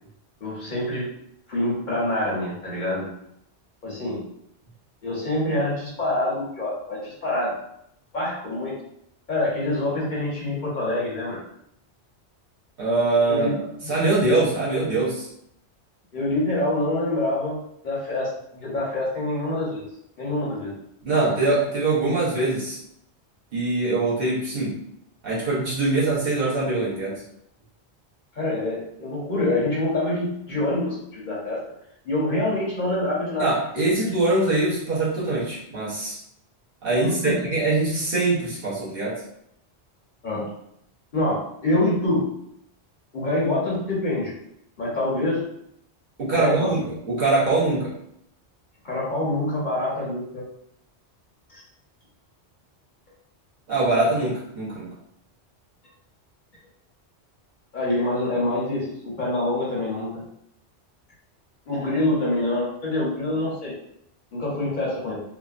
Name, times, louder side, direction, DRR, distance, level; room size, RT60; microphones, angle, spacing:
voice 1, 0.4-1.1 1.5-3.1 3.8-4.2 5.0-7.6 8.1-8.8 9.3-11.4 13.3-13.5 13.8-13.9 16.1-17.6 17.8-19.9 20.2-20.7 28.3-31.6 32.1-33.5 33.9-34.0 37.0-37.4 40.2-40.5 41.1-42.3 43.1-44.3 44.8-45.4 46.3-46.7 48.8-50.4 51.5-51.6 57.7-60.2 61.7-63.7 64.3-65.2, left 1 dB, 50° left, -6 dB, 0.9 m, -26 dB
voice 2, 12.8-15.3 21.0-22.8 23.5-24.8 25.2-27.2 33.4-36.2 36.8-39.2 46.2-47.9 53.7-54.9, right 2 dB, 60° right, -7 dB, 1.1 m, -23 dB
3.2 x 2.0 x 2.4 m, 0.74 s
omnidirectional pair, 1.1 m